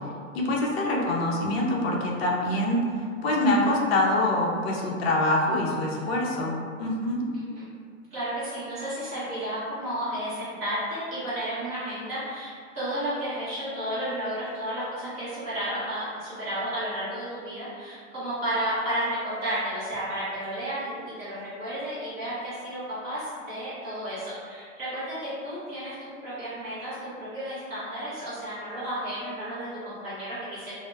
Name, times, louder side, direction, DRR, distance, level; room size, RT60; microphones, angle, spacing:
voice 1, 0.3-7.2, left 1 dB, 50° left, -2 dB, 0.5 m, -25 dB
voice 2, 7.3-7.7 8.1-30.7, right 1 dB, 15° right, -13 dB, 0.4 m, -32 dB
2.0 x 2.0 x 3.1 m, 2.1 s
hypercardioid pair, 165°, 39 cm